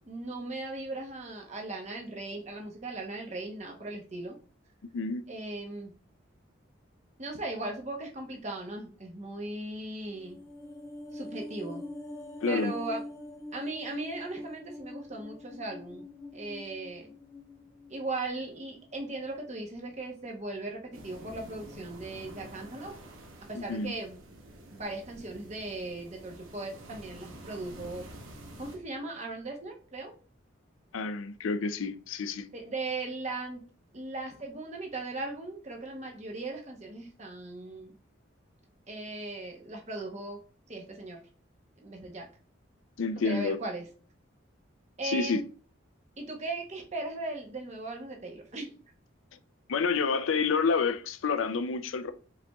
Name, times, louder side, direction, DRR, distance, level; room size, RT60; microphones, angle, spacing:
voice 1, 0.0-4.4 5.3-5.9 7.2-10.4 11.1-11.8 12.5-13.0 13.5-16.0 16.3-17.1 17.9-22.9 23.5-24.2 24.7-28.1 28.6-30.1 32.5-33.6 33.9-37.9 38.9-40.4 40.7-41.2 41.8-42.3 43.2-43.8 45.0-45.4 46.2-48.7, right 2 dB, 35° right, 0.9 m, -38 dB
sound 1, 10.1-18.5 18.8-19.0, left 1 dB, 15° left, 0.8 m, -44 dB
voice 2, 12.4-12.7 23.5-23.9 30.9-32.5 43.0-43.6 45.0-45.4 49.7-52.1, left 4 dB, 80° left, 0.5 m, -29 dB
sound 2, 20.9-28.8, right 1 dB, 80° right, 0.9 m, -48 dB
5.0 x 4.2 x 2.3 m
head